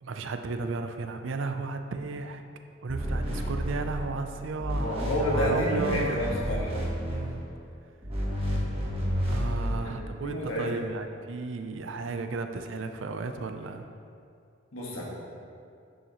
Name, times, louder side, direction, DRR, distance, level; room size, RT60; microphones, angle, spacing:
voice 1, 0.0-2.4 2.8-6.2 7.1-7.4 9.3-13.9, right 4 dB, 65° right, 7 dB, 0.5 m, -34 dB
sound 1, 2.9-4.3 4.6-7.5 8.0-9.7, equal, 30° right, 1.3 m, -30 dB
voice 2, 4.8-6.7 9.8-10.6 14.7-15.0, equal, 75° left, -4 dB, 1.7 m, -30 dB
9.4 x 6.4 x 3.0 m, 2.4 s
head